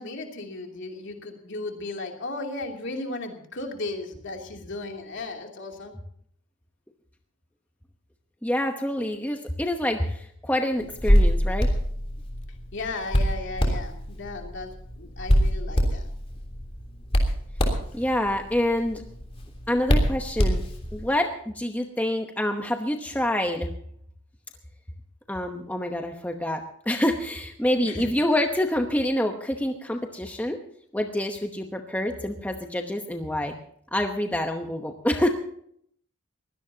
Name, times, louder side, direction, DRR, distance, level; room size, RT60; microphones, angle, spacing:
voice 1, 0.0-5.9 12.7-16.1 27.8-28.1, left 2 dB, 55° left, 2 dB, 2.9 m, -35 dB
voice 2, 8.4-11.7 17.9-19.0 19.7-20.6 20.9-21.3 21.5-23.7 25.3-30.6 30.9-33.6 33.9-35.3, left 1 dB, 5° left, 4 dB, 0.9 m, -27 dB
Hands, 10.8-21.1, equal, 25° left, 3.2 m, -25 dB
22.0 x 17.0 x 2.8 m, 0.66 s
head